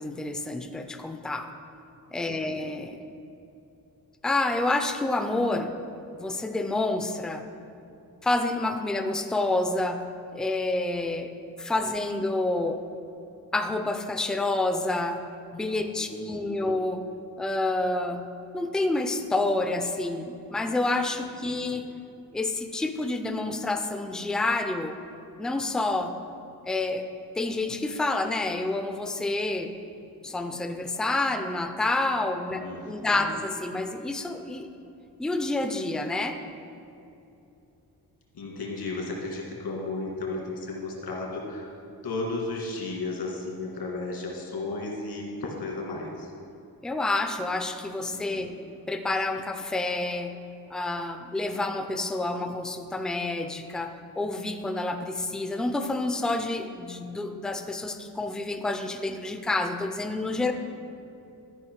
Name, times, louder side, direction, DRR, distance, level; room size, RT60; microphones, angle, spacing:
voice 1, 0.0-1.5 2.1-3.0 4.2-5.7 6.1-7.4 8.2-10.0 10.3-11.3 11.6-12.8 13.5-15.2 15.5-17.0 17.4-18.3 18.5-21.9 22.3-25.0 25.4-26.2 26.6-27.1 27.4-29.7 30.2-34.7 35.2-36.4 46.8-48.6 48.9-50.4 50.7-60.5, left 2 dB, ahead, 7 dB, 0.3 m, -28 dB
voice 2, 2.3-2.6 15.7-16.7 21.2-21.8 32.5-33.4 38.3-41.7 42.0-46.3 48.0-48.6 60.4-60.5, left 2 dB, 75° left, -1 dB, 2.0 m, -35 dB
13.0 x 5.2 x 4.6 m, 2.8 s
wide cardioid pair, 145°, 39 cm